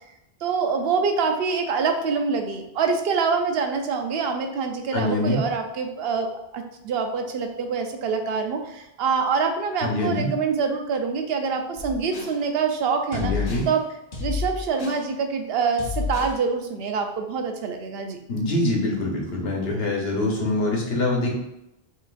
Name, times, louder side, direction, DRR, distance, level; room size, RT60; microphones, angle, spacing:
voice 1, 0.4-13.3 13.7-13.8 14.2-18.2, right 5 dB, 75° right, 5 dB, 0.8 m, -25 dB
voice 2, 4.9-5.4 9.8-10.3 13.1-13.6 18.3-21.3, left 2 dB, 80° left, -1 dB, 1.2 m, -24 dB
sound 1, 11.8-12.4 13.1-13.7 14.1-15.0 15.8-16.4, left 4 dB, 45° left, 0.8 m, -30 dB
5.6 x 3.0 x 2.4 m, 0.88 s
omnidirectional pair, 1.0 m